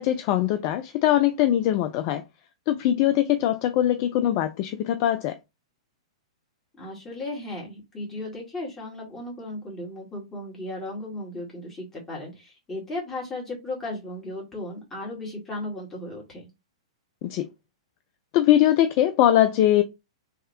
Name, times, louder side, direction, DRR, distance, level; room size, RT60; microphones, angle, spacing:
voice 1, 0.0-2.2 2.7-5.4 17.2-17.5 18.3-19.8, left 12 dB, 35° left, 0.3 m, -21 dB
voice 2, 6.7-16.5, left 1 dB, 15° left, 1.9 m, -35 dB
3.5 x 3.1 x 2.7 m
figure-of-eight pair, 105°, 3 cm